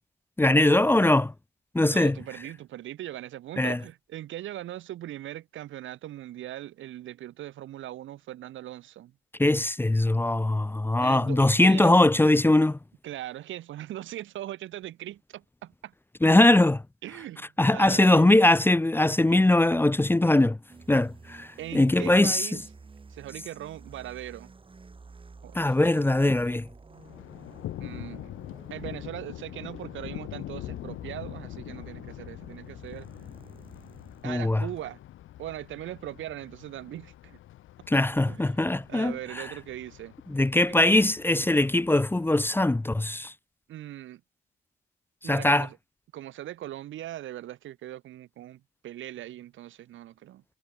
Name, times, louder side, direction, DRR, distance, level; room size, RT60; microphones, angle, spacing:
voice 1, 0.4-1.3 1.7-2.2 3.6-3.8 9.4-12.8 16.2-16.8 17.6-20.6 20.9-22.5 25.5-26.7 34.2-34.6 37.9-39.4 40.3-43.3 45.2-45.7, left 2 dB, 10° left, 0.8 m, -21 dB
voice 2, 1.9-9.1 11.0-12.0 13.0-15.9 17.0-18.3 21.6-22.6 23.1-24.5 25.4-26.4 27.8-28.3 28.7-33.1 34.2-35.0 35.4-37.4 38.3-38.6 38.9-40.1 43.7-44.2 45.2-45.8 46.1-50.4, right 13 dB, 80° right, 1.8 m, -40 dB
sound 1, 20.7-34.3, right 4 dB, 25° right, 2.9 m, -51 dB
Thunder, 26.9-42.8, left 14 dB, 85° left, 4.4 m, -44 dB
cardioid pair, 90°, 20 cm